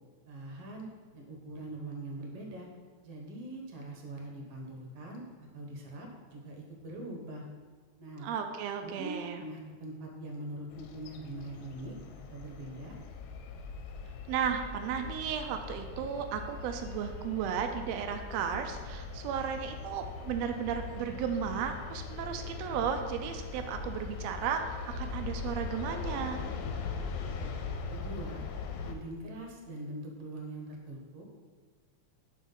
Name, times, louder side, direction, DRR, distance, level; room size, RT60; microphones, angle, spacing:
voice 1, 0.3-0.9 1.1-2.7 3.0-7.4 8.0-8.3 8.8-12.0 12.3-13.0 27.0-27.6 27.8-28.4 28.8-31.2, right 1 dB, 60° right, 1 dB, 1.9 m, -43 dB
voice 2, 8.2-9.4 14.3-26.4, right 7 dB, 90° right, 5 dB, 1.4 m, -34 dB
sound 1, 10.7-28.9, left 4 dB, 85° left, 2.1 m, -40 dB
7.3 x 4.8 x 5.5 m, 1.5 s
omnidirectional pair, 3.5 m